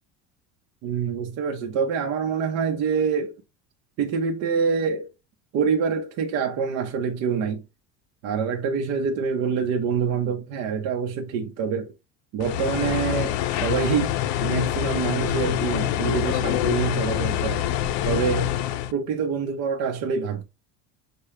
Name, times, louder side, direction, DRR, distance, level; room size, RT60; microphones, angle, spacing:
voice 1, 0.8-3.4 4.0-5.1 5.5-7.6 8.2-11.9 12.3-14.1 14.4-17.6 18.0-18.5 18.9-20.4, right 6 dB, 50° right, 0.7 m, -26 dB
sound 1, 12.4-18.9, left 12 dB, 65° left, 0.5 m, -25 dB
6.5 x 2.2 x 3.1 m
cardioid pair, 145°, 32 cm